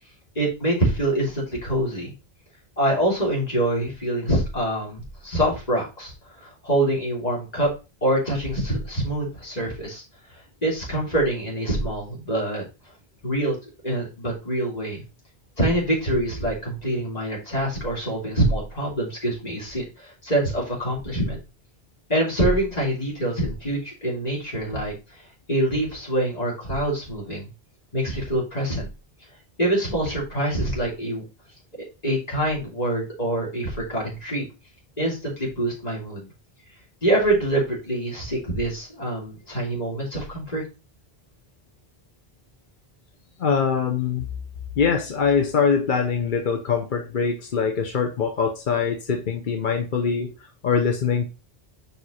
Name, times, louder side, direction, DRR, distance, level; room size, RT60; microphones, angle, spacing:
voice 1, 0.3-2.1 2.8-7.7 8.0-10.0 10.6-12.6 13.2-13.5 13.8-15.0 15.6-21.4 22.1-24.9 25.5-27.5 27.9-28.9 29.6-31.2 32.0-34.4 35.0-36.3 37.0-40.6, right 1 dB, 40° left, -4 dB, 3.0 m, -25 dB
voice 2, 43.4-44.3 44.8-51.3, left 6 dB, 55° left, 4 dB, 0.9 m, -23 dB
5.2 x 5.0 x 4.2 m, 0.29 s
omnidirectional pair, 1.0 m